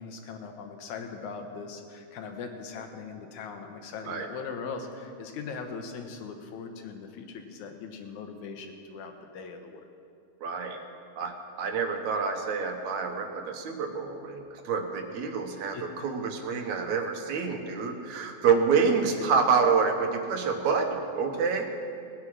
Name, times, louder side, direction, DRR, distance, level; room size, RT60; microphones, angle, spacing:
voice 1, 0.0-9.8 15.7-15.9 19.2-19.4, left 5 dB, 85° left, 5 dB, 2.7 m, -40 dB
voice 2, 10.4-10.8 11.2-21.8, right 5 dB, 75° right, 4 dB, 2.5 m, -27 dB
19.0 x 9.8 x 6.1 m, 2.4 s
omnidirectional pair, 3.4 m